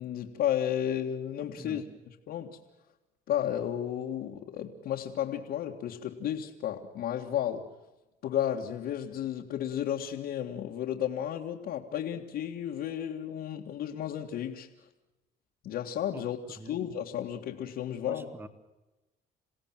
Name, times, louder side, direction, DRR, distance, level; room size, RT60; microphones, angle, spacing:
voice 1, 0.0-2.6 3.3-7.6 8.2-14.7 15.6-18.3, left 10 dB, 70° left, -1 dB, 2.0 m, -33 dB
voice 2, 18.1-18.5, right 2 dB, 15° right, 10 dB, 1.9 m, -44 dB
28.5 x 17.0 x 7.5 m, 1.0 s
cardioid pair, 110°, 17 cm